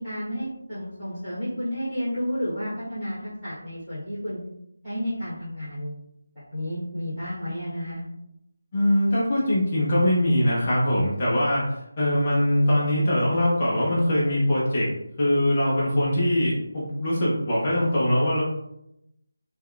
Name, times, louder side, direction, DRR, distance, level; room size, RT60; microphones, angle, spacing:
voice 1, 0.0-4.4 4.8-5.9 6.5-8.0, equal, 5° left, -19 dB, 1.4 m, -31 dB
voice 2, 8.7-14.9 15.2-18.4, left 1 dB, 25° left, -7 dB, 0.6 m, -22 dB
3.4 x 2.3 x 2.2 m, 0.82 s
figure-of-eight pair, 175°, 0 cm